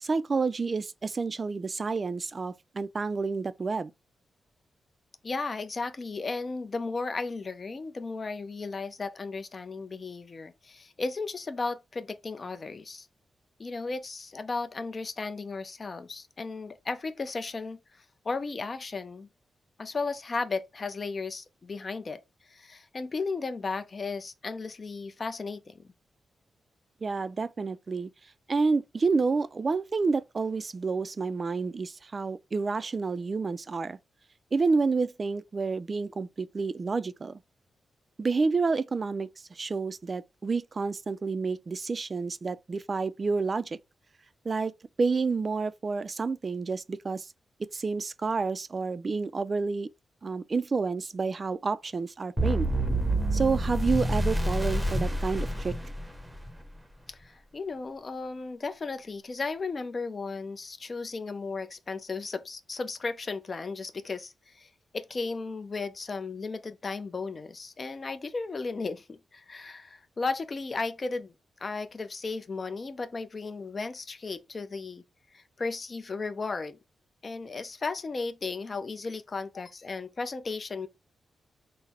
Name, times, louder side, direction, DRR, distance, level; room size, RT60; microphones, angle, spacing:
voice 1, 0.0-3.9 27.0-28.1 28.5-34.0 34.5-37.4 38.2-43.8 44.5-44.7 45.0-47.3 47.7-49.9 50.2-52.7 53.3-55.7, right 4 dB, 40° right, 0.3 m, -29 dB
voice 2, 5.2-13.1 13.6-19.3 19.8-22.2 22.5-25.9 57.1-71.3 71.6-75.0 75.3-76.8 77.2-80.9, left 4 dB, 40° left, 0.5 m, -35 dB
sound 1, 52.4-56.5, right 1 dB, 10° right, 0.7 m, -28 dB
3.8 x 2.0 x 4.2 m
cardioid pair, 85°, 0 cm